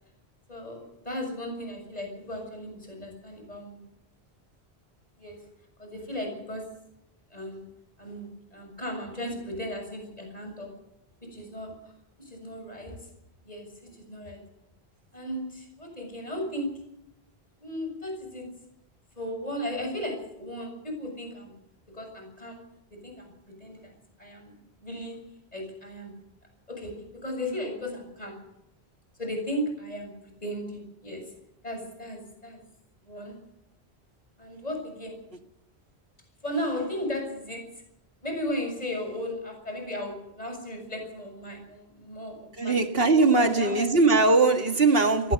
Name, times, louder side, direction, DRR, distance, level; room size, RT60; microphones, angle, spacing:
voice 1, 0.5-3.8 5.2-5.4 5.8-6.7 7.3-7.7 8.0-10.7 11.2-11.9 12.2-13.1 13.4-14.4 15.1-16.8 17.6-18.5 19.1-21.6 21.9-22.6 22.9-23.9 24.2-25.2 25.5-26.1 26.7-28.4 29.2-30.1 30.4-31.3 31.6-32.6 33.0-33.4 34.4-35.2 36.4-37.8 38.2-42.8 43.2-43.9, equal, 35° left, 7.0 m, -36 dB
voice 2, 42.6-45.3, right 3 dB, 65° right, 2.3 m, -20 dB
23.0 x 18.0 x 6.7 m
omnidirectional pair, 1.1 m